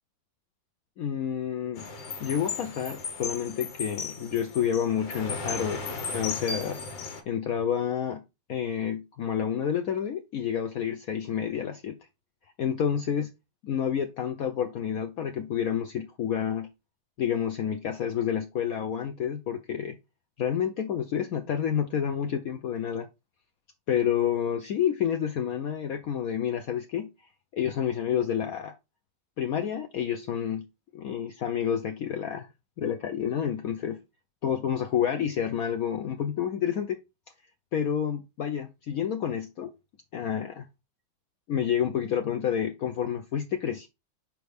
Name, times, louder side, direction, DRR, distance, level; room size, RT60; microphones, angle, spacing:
voice 1, 1.0-1.9 2.2-6.8 7.3-8.2 8.5-12.0 12.6-13.3 13.6-16.7 17.2-20.0 20.4-23.1 23.9-27.1 27.5-28.7 29.4-30.7 30.9-32.5 32.8-34.0 34.4-37.0 37.7-39.7 40.1-40.7 41.5-43.9, left 8 dB, 65° left, 0.9 m, -29 dB
sound 1, 1.8-7.2, left 4 dB, 90° left, 2.0 m, -36 dB
6.3 x 4.7 x 3.4 m
omnidirectional pair, 1.9 m